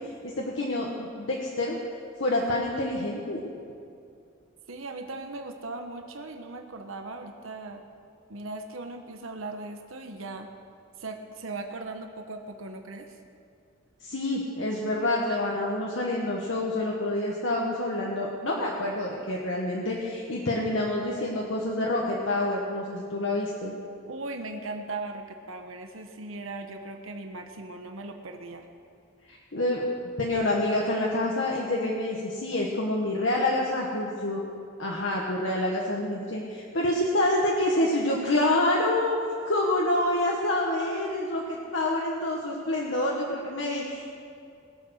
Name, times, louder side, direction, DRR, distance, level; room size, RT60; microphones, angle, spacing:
voice 1, 0.2-1.8 2.2-3.4 14.0-23.7 29.3-29.9 30.2-34.4 34.8-39.1 39.5-44.1, left 1 dB, 65° left, -2 dB, 1.4 m, -27 dB
voice 2, 4.7-7.8 8.3-10.5 11.0-13.2 24.1-28.7, right 2 dB, 80° right, 5 dB, 1.0 m, -38 dB
20.5 x 7.5 x 6.4 m, 2.4 s
head